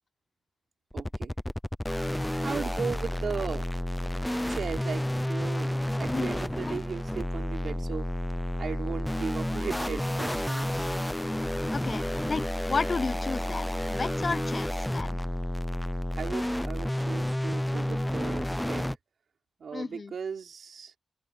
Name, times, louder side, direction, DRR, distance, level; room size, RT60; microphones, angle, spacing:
sound 1, 0.9-19.0, left 1 dB, 5° left, 0.5 m, -30 dB
voice 1, 0.9-1.3 2.4-3.9 4.5-8.1 8.6-10.9 16.2-18.9 19.6-20.9, right 6 dB, 60° right, 3.9 m, -37 dB
voice 2, 6.1-6.8 11.7-15.2 19.7-20.1, left 4 dB, 35° left, 0.8 m, -33 dB
open air
wide cardioid pair, 140°, 0 cm